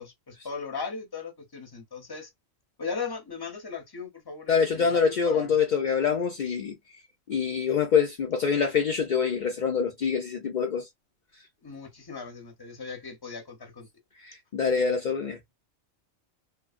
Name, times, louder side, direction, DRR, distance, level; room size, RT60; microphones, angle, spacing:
voice 1, 0.0-2.3 2.8-5.5 11.6-13.9, left 5 dB, 20° left, 0.7 m, -38 dB
voice 2, 4.5-6.8 7.3-10.9 14.2-15.4, left 6 dB, 65° left, 0.4 m, -25 dB
3.0 x 2.0 x 2.5 m
omnidirectional pair, 1.4 m